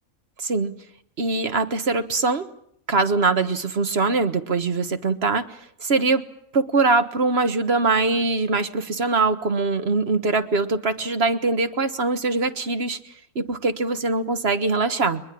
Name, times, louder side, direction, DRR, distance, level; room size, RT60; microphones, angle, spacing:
voice 1, 0.4-0.7 1.2-2.5 2.9-5.4 5.8-6.2 6.5-13.0 13.3-15.2, right 3 dB, 45° right, 9 dB, 1.7 m, -22 dB
23.0 x 21.5 x 8.5 m, 0.68 s
omnidirectional pair, 1.4 m